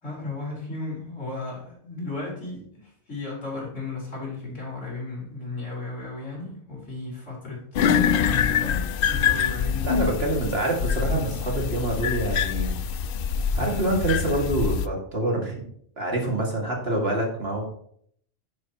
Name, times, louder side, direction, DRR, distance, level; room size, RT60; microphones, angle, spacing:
voice 1, 0.0-10.2, left 3 dB, 85° left, -3 dB, 4.5 m, -35 dB
sound 1, 7.7-14.9, left 7 dB, 60° left, 0.6 m, -25 dB
voice 2, 9.8-12.8 13.6-15.6 16.0-17.6, right 1 dB, 55° right, 0 dB, 2.5 m, -26 dB
10.0 x 10.0 x 3.0 m, 0.66 s
omnidirectional pair, 1.3 m